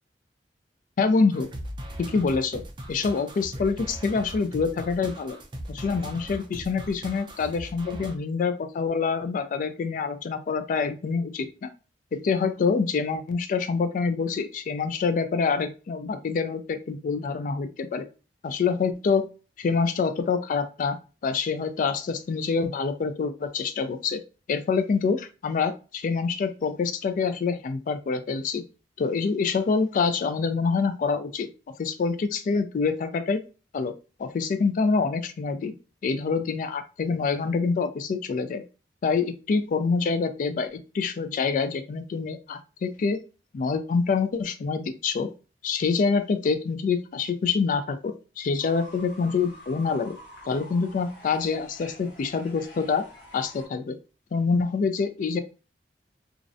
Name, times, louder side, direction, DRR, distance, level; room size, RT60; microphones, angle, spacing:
voice 1, 1.0-1.5 2.0-2.6 2.9-5.4 5.7-11.7 12.1-18.1 18.4-19.2 19.6-21.0 21.2-24.2 24.5-28.6 29.0-31.5 31.8-33.4 33.7-33.9 34.2-35.7 36.0-38.6 39.0-43.2 43.5-45.3 45.6-50.2 50.5-53.0 53.3-54.0 54.3-55.4, left 5 dB, 50° left, 9 dB, 0.3 m, -26 dB
sound 1, 1.3-8.1, right 1 dB, 25° right, 0.4 m, -39 dB
Fowl / Bird, 48.6-53.7, left 1 dB, 85° left, 1.0 m, -47 dB
2.5 x 2.0 x 2.5 m, 0.33 s
head